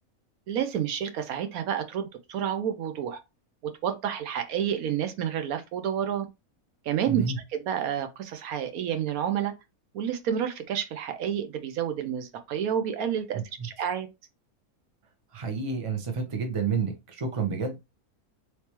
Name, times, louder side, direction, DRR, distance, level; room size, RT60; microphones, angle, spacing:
voice 1, 0.5-3.2 3.6-6.3 6.8-7.2 7.5-9.5 9.9-14.1, right 9 dB, 80° right, 1.1 m, -29 dB
voice 2, 7.1-7.4 13.3-13.7 15.3-17.8, right 5 dB, 30° right, 0.6 m, -30 dB
3.3 x 3.1 x 2.9 m
omnidirectional pair, 1.5 m